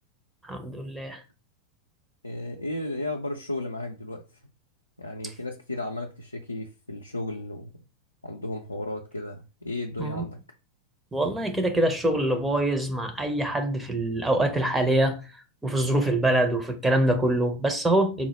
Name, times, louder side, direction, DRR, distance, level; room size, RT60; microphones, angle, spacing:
voice 1, 0.4-1.2 10.0-10.2 11.1-15.2 15.6-18.3, right 1 dB, 10° right, 0.5 m, -24 dB
voice 2, 2.2-4.2 5.0-7.7 8.2-10.4, left 2 dB, 85° left, 0.3 m, -34 dB
4.1 x 2.0 x 2.8 m
figure-of-eight pair, 90°, 0 cm